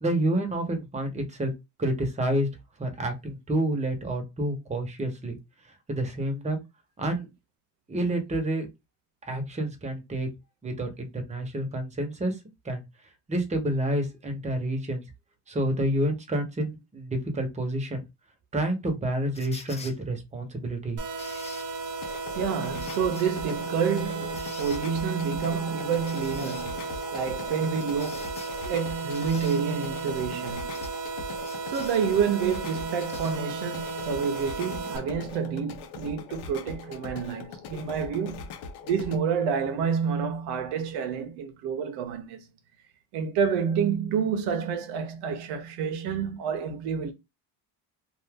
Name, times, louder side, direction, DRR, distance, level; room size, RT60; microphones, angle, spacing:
voice 1, 0.0-1.5 1.8-2.5 2.8-5.4 5.9-6.6 7.0-7.3 7.9-8.7 9.2-10.3 10.6-12.4 12.6-12.8 13.3-15.0 15.5-18.0 18.5-21.0, right 1 dB, 15° right, 0.9 m, -29 dB
sound 1, 19.3-20.0 21.2-21.7 22.8-23.3 24.4-24.8 26.1-26.7 27.8-28.5 29.1-29.6 30.7-30.9 31.4-32.0 33.1-33.4 34.3-34.4, left 4 dB, 15° left, 0.5 m, -45 dB
sound 2, 21.0-35.0, right 4 dB, 50° right, 0.8 m, -35 dB
sound 3, 21.9-39.2, left 5 dB, 75° left, 0.8 m, -41 dB
voice 2, 22.4-28.3 28.7-30.7 31.7-38.5 38.8-42.4 43.1-47.1, right 6 dB, 85° right, 0.7 m, -29 dB
2.6 x 2.4 x 3.5 m
cardioid pair, 110°, 39 cm